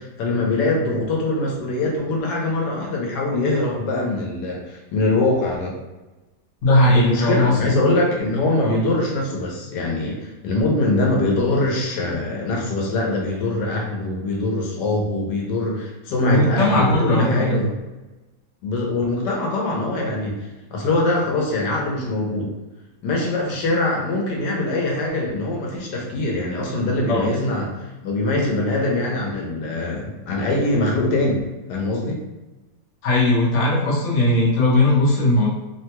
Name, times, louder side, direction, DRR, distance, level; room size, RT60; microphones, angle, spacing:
voice 1, 0.0-5.7 6.9-17.7 18.6-20.4 20.7-22.5 23.0-31.4 31.7-32.2, left 2 dB, 85° left, -1 dB, 1.3 m, -23 dB
voice 2, 6.6-7.8 8.6-8.8 16.2-17.6 27.1-27.3 33.0-35.5, left 1 dB, 55° left, -4 dB, 1.0 m, -18 dB
3.3 x 2.2 x 2.8 m, 1.1 s
omnidirectional pair, 1.8 m